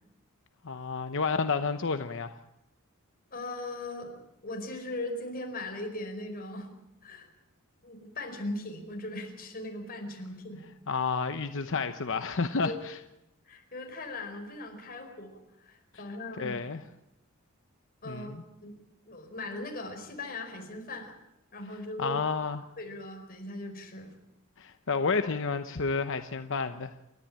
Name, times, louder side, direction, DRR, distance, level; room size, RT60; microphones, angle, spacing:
voice 1, 0.6-2.3 10.9-13.0 16.4-16.8 18.1-18.4 22.0-22.6 24.6-26.9, left 4 dB, 60° left, 9 dB, 0.9 m, -30 dB
voice 2, 3.3-6.7 7.0-7.3 7.8-10.6 12.6-12.8 13.5-16.6 18.0-18.8 19.1-21.1 21.5-22.2 22.8-24.1, left 2 dB, 45° left, 4 dB, 5.0 m, -39 dB
29.0 x 13.5 x 8.9 m, 0.88 s
head